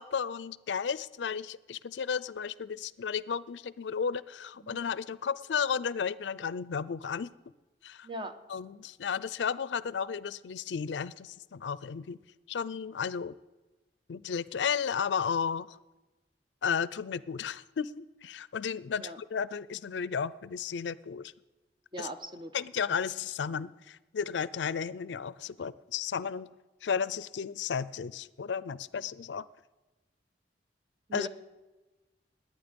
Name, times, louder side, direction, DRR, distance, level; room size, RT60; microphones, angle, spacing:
voice 1, 0.0-7.3 7.8-8.1 8.5-12.2 12.5-13.3 14.1-15.8 16.6-21.3 22.0-22.1 22.5-26.5 26.8-29.4 31.1-31.3, left 6 dB, 90° left, 19 dB, 0.4 m, -33 dB
voice 2, 8.0-8.3 19.0-19.2 21.9-22.5 31.1-31.3, equal, 30° right, 8 dB, 1.0 m, -40 dB
20.5 x 9.2 x 5.2 m, 1.1 s
head